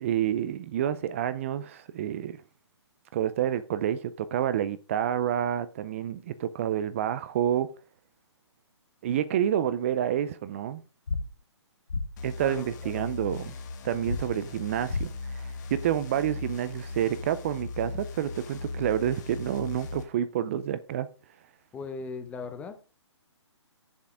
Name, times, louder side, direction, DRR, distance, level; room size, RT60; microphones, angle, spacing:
voice 1, 0.0-2.4 3.1-7.7 9.0-10.8 12.2-13.5 13.8-21.1, right 10 dB, 25° right, 0.4 m, -29 dB
sound 1, 11.1-11.2 11.9-12.0 14.1-14.2 14.9-15.1, left 4 dB, 85° left, 1.5 m, -28 dB
sound 2, 12.2-20.0, left 3 dB, 40° left, 1.3 m, -39 dB
voice 2, 21.7-22.8, left 4 dB, 10° left, 0.8 m, -38 dB
7.4 x 7.2 x 4.9 m
hypercardioid pair, 150°, 15 cm